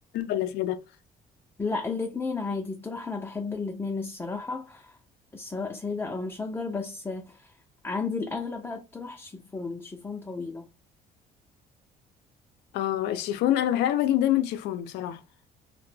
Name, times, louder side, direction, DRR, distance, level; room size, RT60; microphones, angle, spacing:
voice 1, 0.1-0.8 12.7-15.2, left 12 dB, 85° left, 0.4 m, -26 dB
voice 2, 1.6-5.0 5.3-7.5 7.8-10.7, left 4 dB, 15° left, 0.4 m, -33 dB
2.1 x 2.1 x 3.1 m
cardioid pair, 110°, 17 cm